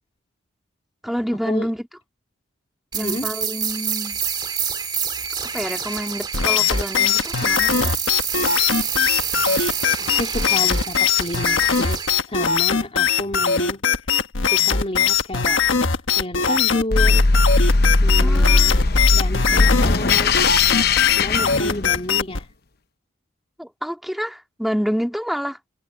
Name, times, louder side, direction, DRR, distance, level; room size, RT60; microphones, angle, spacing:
voice 1, 1.0-1.9 2.9-4.2 5.5-8.0 18.2-18.8 23.6-25.6, equal, ahead, 2.1 m, -28 dB
sound 1, 2.9-12.1, right 7 dB, 20° right, 2.2 m, -27 dB
sound 2, 6.3-22.4, left 7 dB, 70° left, 1.3 m, -20 dB
voice 2, 10.0-12.0 12.3-13.8 14.5-15.6 16.2-17.3 18.0-20.3 21.2-22.5, left 1 dB, 30° left, 2.7 m, -30 dB
sound 3, 16.9-22.2, left 3 dB, 50° left, 0.9 m, -18 dB
head